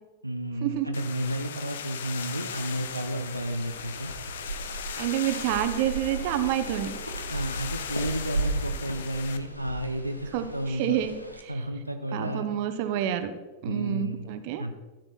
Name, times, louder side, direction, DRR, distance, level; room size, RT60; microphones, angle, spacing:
voice 1, 0.2-4.1 7.3-11.0 11.5-12.5 13.6-14.3 14.6-14.7, right 1 dB, 85° right, 6 dB, 0.7 m, -32 dB
sound 1, 0.9-9.4, left 8 dB, 60° left, 0.7 m, -38 dB
sound 2, 2.5-11.4, right 2 dB, 85° left, 1.1 m, -36 dB
voice 2, 5.0-6.9 10.3-11.2 12.1-13.3 13.6-14.6, right 11 dB, 50° right, 9 dB, 1.0 m, -28 dB
13.5 x 7.9 x 4.5 m, 1.2 s
figure-of-eight pair, 90°, 0 cm